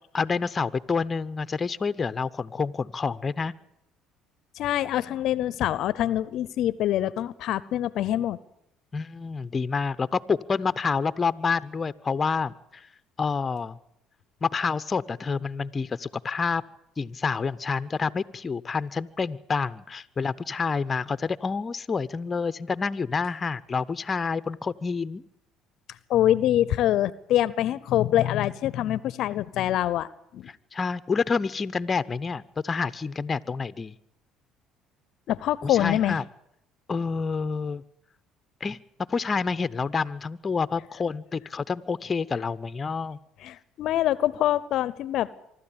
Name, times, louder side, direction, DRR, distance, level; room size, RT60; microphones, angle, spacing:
voice 1, 0.1-3.5 8.9-12.9 13.2-13.8 14.4-16.6 17.0-25.2 30.5-33.9 35.6-36.2 36.9-37.8 38.6-38.8 39.1-43.2, left 5 dB, 30° left, 15 dB, 0.7 m, -28 dB
voice 2, 4.6-8.4 26.1-30.1 30.3-30.5 35.3-36.2 43.4-45.3, left 12 dB, 65° left, 19 dB, 0.7 m, -25 dB
24.5 x 12.5 x 8.7 m, 0.79 s
supercardioid pair, 75°, 0 cm